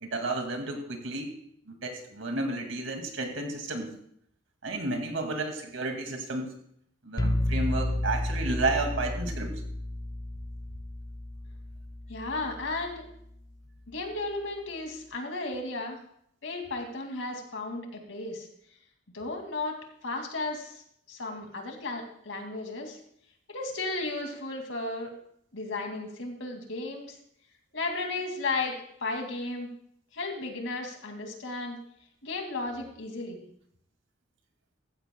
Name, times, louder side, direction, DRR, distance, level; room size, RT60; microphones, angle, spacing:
voice 1, 0.0-1.3 1.7-3.9 4.6-6.5 7.0-9.5, right 2 dB, 90° right, 3 dB, 2.3 m, -32 dB
sound 1, 7.2-12.9, left 1 dB, 20° left, 0.5 m, -32 dB
voice 2, 12.1-13.0 13.9-16.0 16.4-18.5 19.1-23.0 23.5-25.1 25.5-27.2 27.7-28.7 29.0-29.7 30.1-31.8 32.2-33.4, left 2 dB, 75° left, 2 dB, 2.4 m, -34 dB
15.0 x 14.5 x 2.3 m, 0.69 s
head